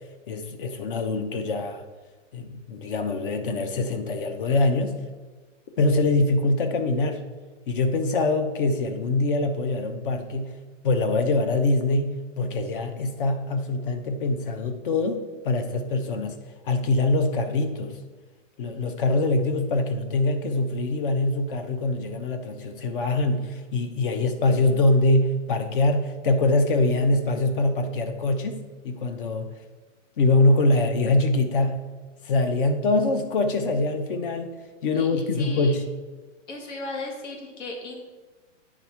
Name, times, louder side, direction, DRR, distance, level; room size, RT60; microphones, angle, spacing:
voice 1, 0.3-1.8 2.3-4.9 5.8-7.2 7.7-10.5 10.8-16.3 16.7-17.9 18.6-28.6 28.8-29.5 30.2-31.8 32.2-34.5 34.8-35.8, left 2 dB, 45° left, 8 dB, 0.8 m, -24 dB
voice 2, 34.9-35.8 36.5-38.0, left 3 dB, 65° left, 1 dB, 1.6 m, -37 dB
9.1 x 3.6 x 5.7 m, 1.3 s
hypercardioid pair, 170°, 38 cm